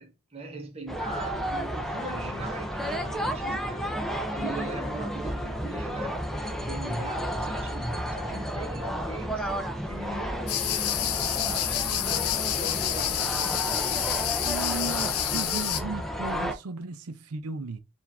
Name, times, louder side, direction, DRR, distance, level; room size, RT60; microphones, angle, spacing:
voice 1, 0.0-3.9 4.3-6.2 6.5-13.7, right 2 dB, 25° right, 1.0 m, -41 dB
sound 1, 0.9-16.5, equal, ahead, 0.5 m, -32 dB
sound 2, 10.5-15.8, left 12 dB, 80° left, 0.6 m, -28 dB
voice 2, 14.4-17.8, right 3 dB, 80° right, 0.6 m, -35 dB
4.7 x 2.7 x 3.4 m
head